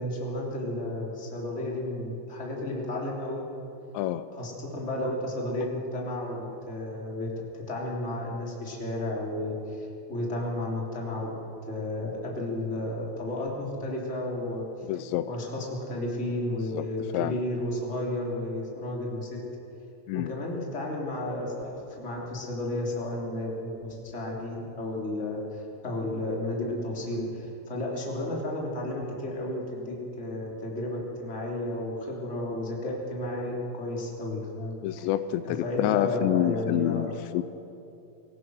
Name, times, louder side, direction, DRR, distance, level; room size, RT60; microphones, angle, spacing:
voice 1, 0.0-3.4 4.4-7.3 7.5-11.3 11.7-14.6 15.2-19.4 20.1-35.1 35.4-37.1, left 1 dB, 15° left, -2 dB, 3.1 m, -32 dB
voice 2, 14.9-15.3 16.7-16.8 17.1-17.4 20.1-20.3 34.8-37.4, left 13 dB, 85° left, 12 dB, 2.8 m, -27 dB
26.5 x 16.5 x 6.3 m, 2.9 s
omnidirectional pair, 5.1 m